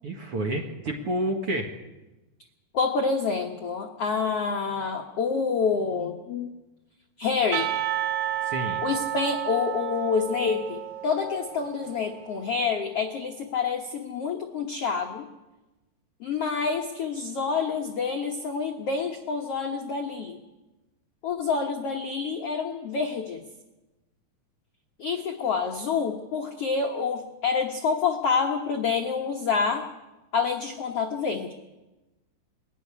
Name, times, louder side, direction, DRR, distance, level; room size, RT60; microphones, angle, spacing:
voice 1, 0.0-1.7 8.4-8.8, right 1 dB, 55° right, 2 dB, 1.7 m, -29 dB
voice 2, 2.7-6.5 7.2-7.7 8.8-15.2 16.2-20.4 21.2-23.4 25.0-29.8 30.3-31.5, left 5 dB, 80° left, 3 dB, 1.3 m, -27 dB
Percussion, 7.5-12.4, right 12 dB, 85° right, 1.6 m, -31 dB
21.5 x 14.0 x 9.9 m, 1.1 s
omnidirectional pair, 4.7 m